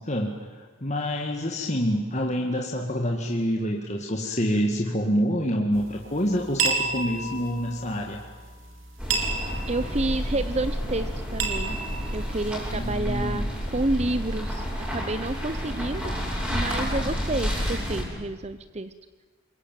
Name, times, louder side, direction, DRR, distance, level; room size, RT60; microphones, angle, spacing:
voice 1, 0.0-8.2 12.7-13.5, equal, 35° left, 2 dB, 2.1 m, -27 dB
sound 1, 5.7-12.9, right 4 dB, 70° right, 4.0 m, -33 dB
sound 2, 9.0-18.0, equal, 5° right, 7.0 m, -30 dB
voice 2, 9.7-11.8 12.1-13.4 13.7-16.1 16.5-18.9, right 2 dB, 30° right, 12 dB, 0.8 m, -29 dB
27.5 x 22.5 x 9.2 m, 1.4 s
head